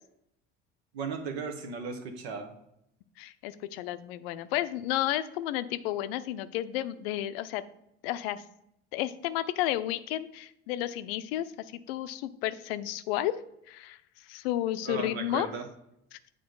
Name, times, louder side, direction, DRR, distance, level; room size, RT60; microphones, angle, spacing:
voice 1, 0.9-2.5 14.9-15.6, right 4 dB, 70° right, 6 dB, 1.1 m, -36 dB
voice 2, 3.2-7.6 8.0-8.4 8.9-11.5 11.9-13.4 13.7-14.0 14.3-15.5 16.1-16.2, left 13 dB, 65° left, 13 dB, 0.5 m, -32 dB
8.6 x 3.4 x 3.9 m, 0.79 s
figure-of-eight pair, 65°, 32 cm